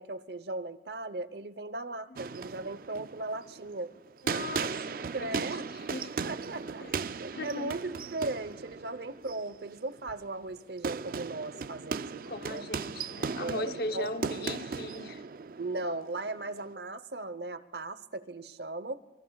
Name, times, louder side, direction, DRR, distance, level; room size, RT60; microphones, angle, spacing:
voice 1, 0.0-3.9 5.1-5.7 6.2-12.6 13.4-14.1 15.6-19.0, right 2 dB, 70° right, 0.9 m, -37 dB
sound 1, 2.2-16.7, right 5 dB, 55° right, 0.4 m, -37 dB
voice 2, 4.2-6.1 6.8-7.8 12.3-15.3, left 2 dB, 60° left, 0.9 m, -39 dB
25.0 x 24.0 x 2.4 m
head